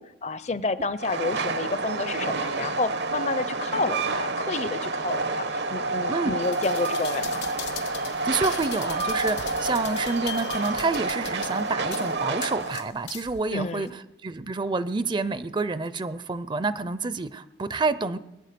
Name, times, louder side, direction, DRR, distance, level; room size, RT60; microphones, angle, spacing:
voice 1, 0.0-7.4 13.5-13.9, left 3 dB, 40° left, 15 dB, 0.5 m, -30 dB
Train, 1.0-12.9, right 3 dB, 75° right, 1.0 m, -29 dB
sound 1, 6.4-13.4 13.9-14.0, left 10 dB, 80° left, 1.0 m, -39 dB
voice 2, 8.1-13.9 14.2-18.2, right 3 dB, 25° right, 15 dB, 0.5 m, -28 dB
21.5 x 9.6 x 6.8 m, 0.95 s
head